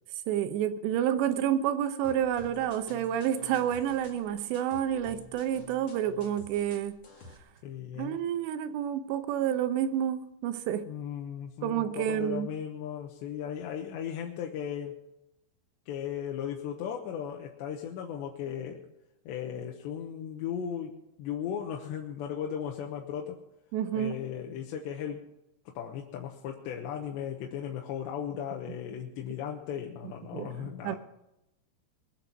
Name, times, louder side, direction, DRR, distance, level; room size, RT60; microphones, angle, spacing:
voice 1, 0.3-7.0 8.0-10.9 11.6-12.5 23.7-24.2 30.3-31.0, right 10 dB, 80° right, 11 dB, 3.0 m, -29 dB
sound 1, 2.0-7.4, left 2 dB, 35° left, 2.2 m, -51 dB
voice 2, 7.6-8.2 10.9-15.0 15.9-18.8 19.3-23.4 23.9-25.2 25.7-31.0, left 9 dB, 80° left, 1 dB, 3.2 m, -36 dB
22.0 x 8.1 x 6.0 m, 0.90 s
omnidirectional pair, 5.1 m